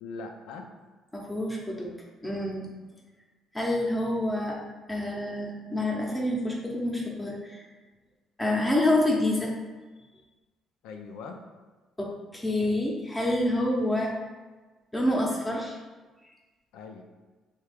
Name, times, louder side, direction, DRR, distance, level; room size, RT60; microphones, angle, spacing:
voice 1, 0.0-0.7 10.8-11.4 16.7-17.0, left 4 dB, 85° left, 4 dB, 0.4 m, -40 dB
voice 2, 1.1-1.9 2.2-2.7 3.5-4.6 4.9-7.6 8.4-9.5 12.0-14.1 14.9-15.8, left 1 dB, 15° left, -2 dB, 0.7 m, -27 dB
3.3 x 2.4 x 3.4 m, 1.3 s
cardioid pair, 85°, 0 cm